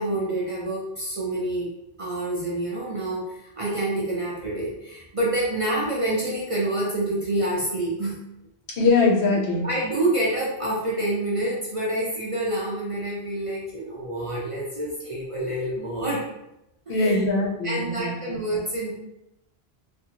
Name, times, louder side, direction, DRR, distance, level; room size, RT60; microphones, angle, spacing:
voice 1, 0.0-1.7 2.0-8.2 9.6-16.3 16.9-17.2 17.6-18.9, right 1 dB, 40° right, -5 dB, 0.5 m, -27 dB
voice 2, 8.8-9.7 16.9-18.4, left 3 dB, 80° left, -3 dB, 1.0 m, -22 dB
2.6 x 2.5 x 2.8 m, 0.86 s
omnidirectional pair, 1.1 m